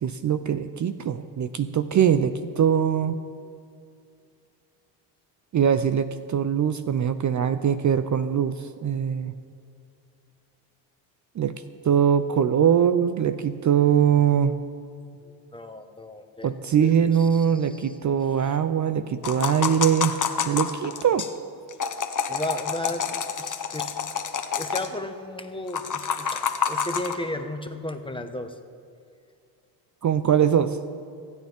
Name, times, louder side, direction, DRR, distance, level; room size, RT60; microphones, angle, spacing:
voice 1, 0.0-3.2 5.5-9.3 11.4-11.5 11.8-14.5 16.4-20.2 20.4-21.3 30.0-30.8, right 8 dB, 35° right, 11 dB, 0.7 m, -22 dB
voice 2, 15.5-18.0 18.4-18.6 21.9-23.1 23.4-23.9 24.5-28.5, left 1 dB, 10° left, 7 dB, 1.5 m, -35 dB
sound 1, 19.2-21.3 21.7-24.9 25.7-27.1, left 7 dB, 40° left, 1.4 m, -28 dB
26.0 x 9.2 x 3.7 m, 2.4 s
hypercardioid pair, 60°, 49 cm